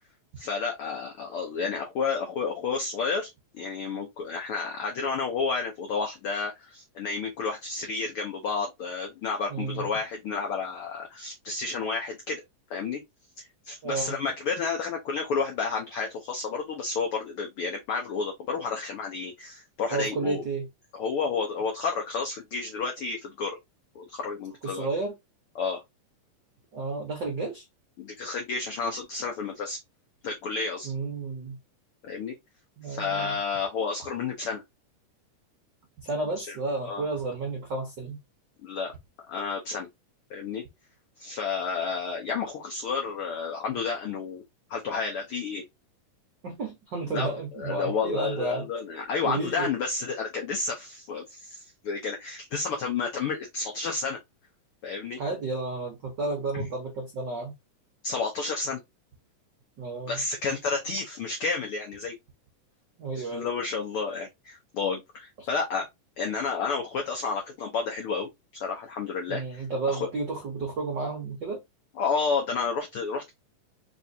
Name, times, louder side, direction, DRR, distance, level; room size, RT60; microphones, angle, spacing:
voice 1, 0.4-12.4 12.7-13.0 13.4-20.4 21.0-23.6 23.9-24.9 25.5-25.8 28.0-29.8 30.2-30.9 32.0-32.4 32.9-34.6 36.4-36.6 36.8-37.1 38.6-38.9 39.3-39.9 40.3-40.6 41.2-44.4 44.7-45.6 47.1-54.2 54.8-55.2 56.5-56.6 58.0-58.8 60.1-62.2 63.1-65.9 66.2-68.3 68.6-70.1 72.0-73.3, left 5 dB, 80° left, 1.2 m, -31 dB
voice 2, 9.5-9.9 13.8-14.2 19.9-20.7 24.6-25.1 26.7-27.6 30.8-31.6 32.8-33.4 36.0-38.2 46.4-48.7 49.2-49.7 55.2-57.5 59.8-60.2 63.0-63.5 65.4-65.5 69.3-71.6, right 3 dB, 75° right, 1.0 m, -32 dB
4.7 x 3.1 x 2.7 m
omnidirectional pair, 3.7 m